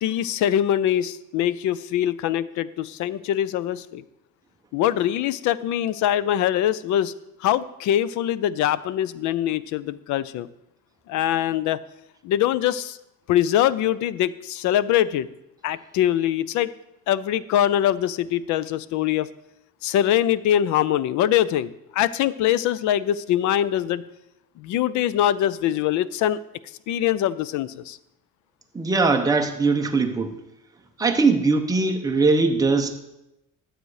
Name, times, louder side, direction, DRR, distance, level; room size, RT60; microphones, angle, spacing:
voice 1, 0.0-4.0 4.7-7.1 7.4-10.5 11.1-11.8 12.2-13.0 13.3-15.3 15.6-16.7 17.1-19.3 19.8-24.0 24.6-26.4 26.9-28.0, left 11 dB, 65° left, 18 dB, 0.5 m, -23 dB
voice 2, 28.7-30.3 31.0-32.9, right 3 dB, 10° right, 4 dB, 0.7 m, -20 dB
12.0 x 7.7 x 4.8 m, 0.90 s
cardioid pair, 180°, 31 cm